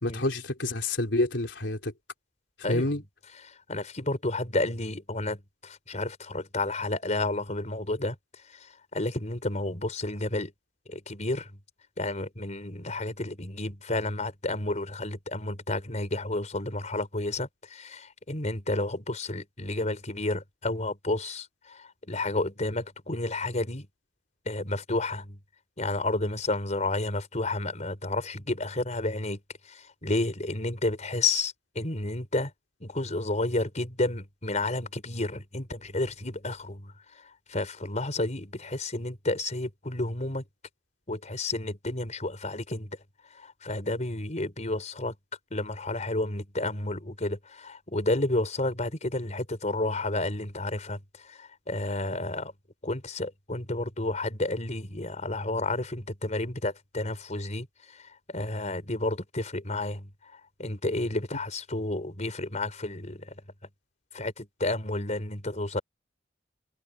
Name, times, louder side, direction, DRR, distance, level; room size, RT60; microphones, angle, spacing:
voice 1, 0.0-1.9 2.7-3.0, left 2 dB, 75° left, 3.6 m, -28 dB
voice 2, 3.4-8.2 8.5-10.5 10.9-11.6 12.0-23.9 24.4-25.4 25.8-29.4 29.6-32.5 32.8-37.2 37.5-40.4 41.1-43.0 43.3-45.1 45.5-52.5 52.8-63.4 64.1-65.8, left 2 dB, 40° left, 5.0 m, -31 dB
head